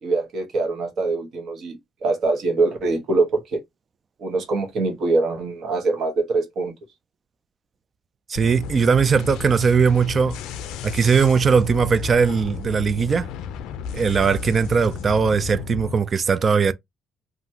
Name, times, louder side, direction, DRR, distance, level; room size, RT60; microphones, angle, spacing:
voice 1, 0.0-3.6 4.2-6.7, right 3 dB, 55° right, 1.1 m, -23 dB
voice 2, 8.3-10.4 10.8-13.3 13.9-16.7, right 6 dB, 35° right, 0.3 m, -19 dB
sound 1, 8.4-16.0, left 7 dB, 85° left, 0.4 m, -33 dB
2.8 x 2.5 x 2.7 m
cardioid pair, 115°, 0 cm